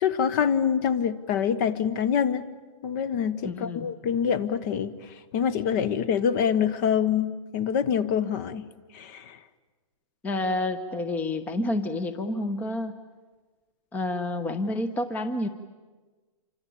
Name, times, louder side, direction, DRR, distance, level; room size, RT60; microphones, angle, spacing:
voice 1, 0.0-2.4 2.8-4.9 5.3-8.6 8.9-9.4, left 7 dB, 35° left, 17 dB, 1.2 m, -25 dB
voice 2, 3.4-3.9 10.2-12.9 13.9-15.5, left 2 dB, 10° left, 11 dB, 0.9 m, -29 dB
27.5 x 24.5 x 8.5 m, 1.3 s
hypercardioid pair, 155°, 17 cm